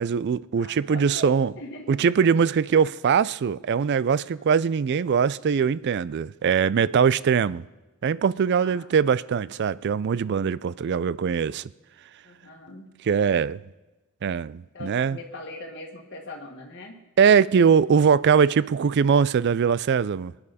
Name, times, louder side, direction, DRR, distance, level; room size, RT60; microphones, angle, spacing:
voice 1, 0.0-1.5 1.9-7.6 8.0-11.7 13.1-13.6 14.2-15.2 17.2-20.3, right 6 dB, 50° right, 0.3 m, -21 dB
voice 2, 0.5-2.0 4.4-4.5 8.5-8.9 12.2-12.9 14.7-17.0, left 2 dB, 50° left, 1.7 m, -41 dB
23.5 x 9.7 x 4.2 m
head